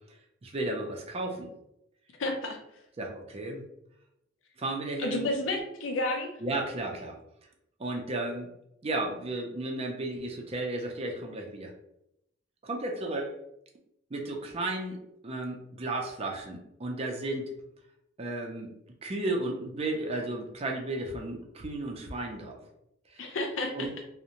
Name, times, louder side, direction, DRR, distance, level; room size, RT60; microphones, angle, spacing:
voice 1, 0.1-1.5 3.0-3.6 4.6-5.3 6.4-7.2 7.8-8.5 8.8-11.7 12.6-13.3 14.1-17.5 18.2-18.7 19.0-22.6 23.1-23.4 23.7-23.9, right 2 dB, 30° right, 1 dB, 0.4 m, -34 dB
voice 2, 2.2-2.6 5.0-6.3 23.2-23.9, left 2 dB, 90° left, 3 dB, 0.6 m, -31 dB
2.5 x 2.1 x 2.8 m, 0.80 s
head